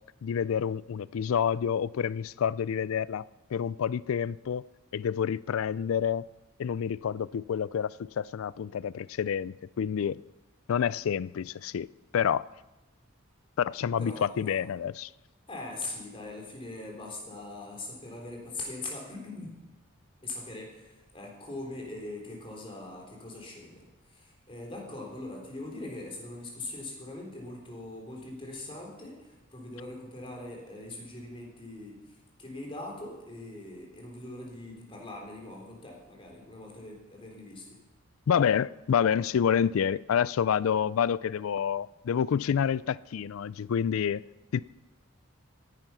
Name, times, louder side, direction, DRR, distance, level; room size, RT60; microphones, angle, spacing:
voice 1, 0.2-3.2 3.5-4.6 4.9-6.3 6.6-10.2 10.7-11.9 12.1-12.5 13.6-15.1 38.3-44.2 44.5-44.6, left 8 dB, 75° left, 0.4 m, -28 dB
voice 2, 14.0-14.7 15.5-19.5 20.2-32.0 32.4-37.7, left 2 dB, 25° left, 3.5 m, -41 dB
16.5 x 10.5 x 5.7 m
head